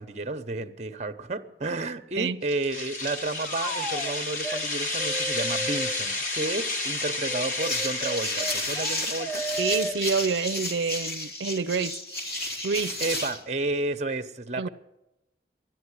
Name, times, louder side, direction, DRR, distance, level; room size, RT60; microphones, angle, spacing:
voice 1, 0.0-9.4 13.0-14.7, right 2 dB, 40° right, 0.8 m, -31 dB
sound 1, 2.5-10.4, left 2 dB, 45° left, 1.8 m, -32 dB
sound 2, 3.3-4.1 4.4-4.6 5.0-6.0 7.2-10.0, right 1 dB, 10° left, 0.9 m, -34 dB
sound 3, 7.5-13.4, left 1 dB, 70° left, 2.8 m, -32 dB
voice 2, 9.6-12.0 12.6-13.0 14.6-14.7, right 5 dB, 90° right, 0.5 m, -27 dB
13.0 x 11.0 x 9.8 m
head